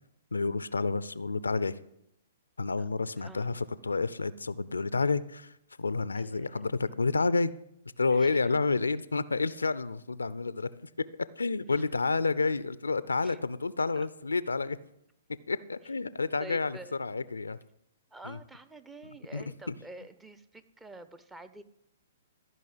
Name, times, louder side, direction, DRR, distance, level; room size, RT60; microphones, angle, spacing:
voice 1, 0.3-1.8 2.6-7.5 8.0-10.9 11.4-14.8 15.5-17.6 18.2-18.4 19.3-19.7, left 4 dB, 85° left, 17 dB, 0.5 m, -30 dB
voice 2, 3.2-3.5 6.1-6.6 8.1-8.5 13.2-13.4 14.0-14.1 16.4-17.1 18.1-21.6, right 2 dB, 10° right, 12 dB, 0.7 m, -48 dB
14.0 x 5.4 x 7.7 m, 0.79 s
figure-of-eight pair, 120°, 0 cm